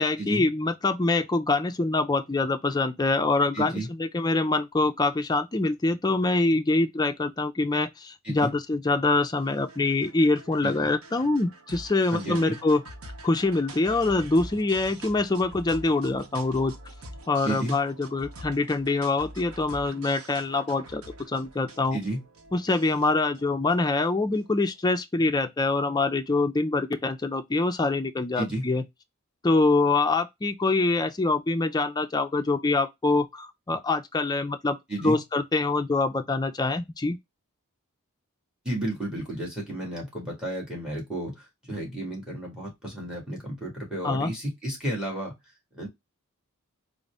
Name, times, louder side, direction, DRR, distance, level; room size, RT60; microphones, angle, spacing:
voice 1, 0.0-12.8 13.2-16.7 17.3-21.0 21.3-22.0 22.5-28.8 29.4-34.8 35.0-37.2 44.0-44.3, left 3 dB, 20° left, 0.4 m, -25 dB
voice 2, 3.5-3.9 8.2-8.5 10.6-10.9 12.1-12.6 17.4-17.8 21.9-22.2 28.4-28.7 34.9-35.2 38.6-45.3 45.7-45.9, right 1 dB, 5° right, 1.5 m, -32 dB
sound 1, 9.0-24.6, right 1 dB, 75° right, 0.9 m, -45 dB
3.8 x 2.1 x 3.2 m
head